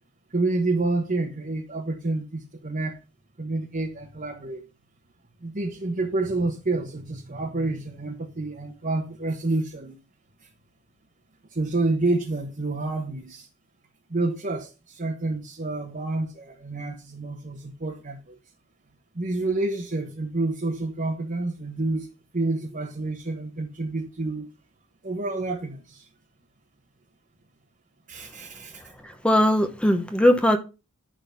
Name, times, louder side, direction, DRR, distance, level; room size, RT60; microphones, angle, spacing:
voice 1, 0.3-3.0 3.4-4.6 5.4-10.0 10.4-10.5 11.5-13.5 14.1-18.4 19.1-22.1 22.3-24.5 25.0-26.1 28.1-28.8, right 2 dB, 40° right, 1.2 m, -28 dB
voice 2, 29.0-30.6, left 1 dB, 5° left, 1.0 m, -20 dB
10.5 x 4.0 x 5.6 m
head